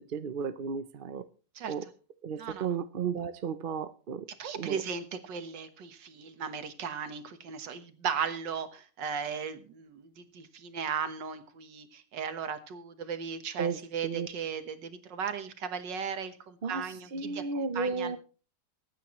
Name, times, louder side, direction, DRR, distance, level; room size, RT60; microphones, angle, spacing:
voice 1, 0.1-1.2 1.7-1.9 2.2-4.3 4.6-4.8 13.6-14.3 16.6-18.2, right 5 dB, 55° right, 0.5 m, -34 dB
voice 2, 4.4-17.4 17.8-18.2, right 6 dB, 80° right, 1.9 m, -36 dB
23.5 x 9.2 x 3.1 m
omnidirectional pair, 1.9 m